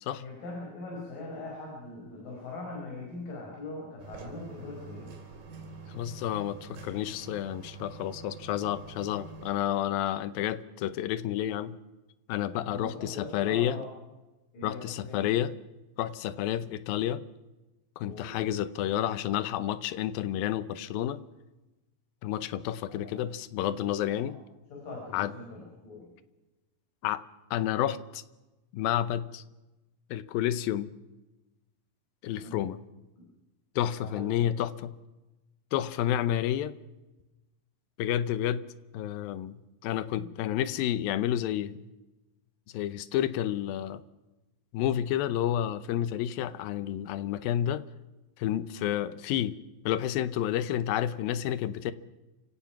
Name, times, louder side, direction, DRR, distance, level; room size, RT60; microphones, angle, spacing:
voice 1, 0.2-5.1 12.6-13.9 14.5-15.2 18.0-18.4 22.9-23.2 23.8-24.3 24.7-26.1 32.4-32.7 34.0-34.5 40.2-40.3, left 2 dB, 70° left, -2 dB, 6.7 m, -41 dB
sound 1, 4.0-9.5, right 4 dB, 80° right, 4.9 m, -46 dB
voice 2, 5.9-11.8 12.3-13.8 14.6-15.5 16.0-17.2 18.0-21.2 22.2-24.4 25.1-25.3 27.0-27.2 27.5-28.2 28.7-29.4 30.1-30.9 32.2-32.8 33.8-35.0 35.7-36.8 38.0-38.7 38.9-41.8 42.7-44.0 44.7-47.8 48.4-49.6 49.9-51.9, left 11 dB, 85° left, 15 dB, 2.6 m, -30 dB
28.5 x 16.5 x 5.9 m, 1.1 s
omnidirectional pair, 4.1 m